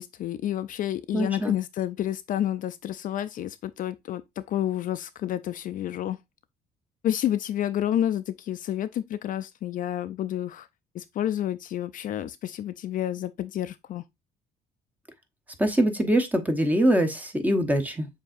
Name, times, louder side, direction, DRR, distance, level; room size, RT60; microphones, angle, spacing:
voice 1, 0.0-6.2 7.0-10.7 10.9-14.0, left 11 dB, 55° left, 0.4 m, -29 dB
voice 2, 1.1-1.5 15.6-18.1, right 1 dB, 10° right, 1.0 m, -23 dB
6.9 x 2.8 x 2.5 m
cardioid pair, 110°, 17 cm